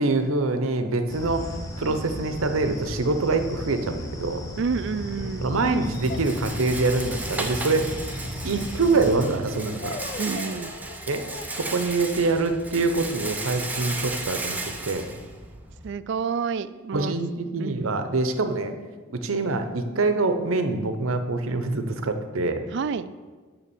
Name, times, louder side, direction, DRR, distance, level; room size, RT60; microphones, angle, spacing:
voice 1, 0.0-4.5 5.4-7.9 8.4-10.0 11.1-11.2 11.5-15.0 16.9-18.7 19.1-22.6, right 3 dB, 75° right, 8 dB, 0.7 m, -25 dB
sound 1, 1.1-9.3, equal, 15° left, 1.0 m, -35 dB
sound 2, 4.3-4.5 6.1-7.0 9.8-11.5, left 4 dB, 30° left, 0.3 m, -40 dB
voice 2, 4.6-5.5 10.2-10.8 15.8-17.1 17.6-18.0 22.7-23.1, right 5 dB, 55° right, 14 dB, 0.3 m, -29 dB
Rattle, 4.9-15.9, right 2 dB, 10° right, 0.6 m, -35 dB
7.0 x 5.9 x 7.1 m, 1.4 s
head